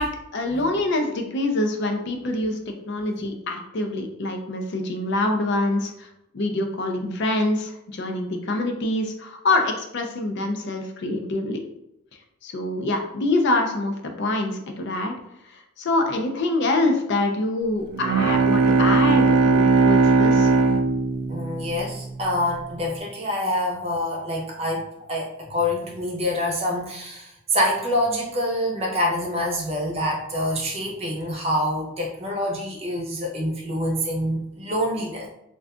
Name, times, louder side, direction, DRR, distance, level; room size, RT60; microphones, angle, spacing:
voice 1, 0.0-2.6 2.9-6.1 6.3-11.6 12.4-15.2 15.5-20.5, left 2 dB, 50° left, 4 dB, 0.4 m, -25 dB
Bowed string instrument, 17.9-22.5, right 4 dB, 80° right, 0.3 m, -19 dB
voice 2, 21.3-35.3, left 1 dB, 30° right, -1 dB, 0.7 m, -26 dB
2.4 x 2.3 x 3.5 m, 0.82 s
head